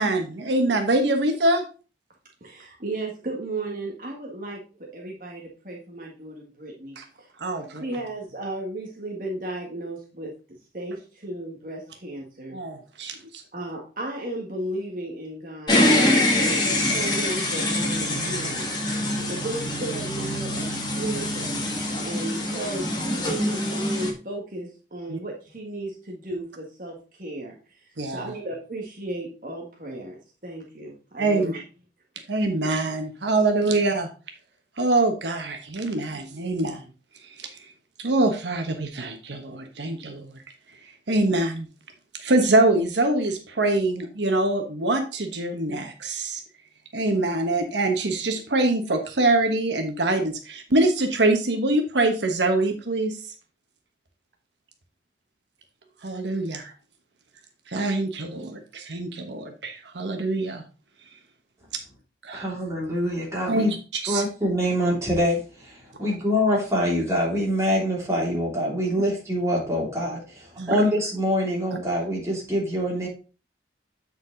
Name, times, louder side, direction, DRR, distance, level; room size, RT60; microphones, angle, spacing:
voice 1, 0.0-1.6 7.0-7.1 7.4-7.8 12.5-13.4 25.1-25.2 28.0-28.3 31.2-31.5 32.3-34.1 34.8-36.8 37.4-37.5 38.0-40.4 41.1-41.7 42.2-46.4 46.9-53.2 56.0-56.7 57.7-60.6 62.2-62.5 63.5-64.2 70.6-70.8, right 2 dB, 90° right, 4 dB, 1.2 m, -24 dB
voice 2, 2.8-4.6 4.9-7.0 7.8-10.3 10.7-12.6 13.5-21.6 22.0-27.6 28.1-31.6, right 2 dB, 50° right, -1 dB, 1.6 m, -34 dB
sound 1, 15.7-24.1, left 1 dB, 25° left, 2.0 m, -24 dB
voice 3, 62.3-63.7 64.1-73.1, equal, 15° right, -4 dB, 3.1 m, -25 dB
8.2 x 5.1 x 3.9 m, 0.34 s
head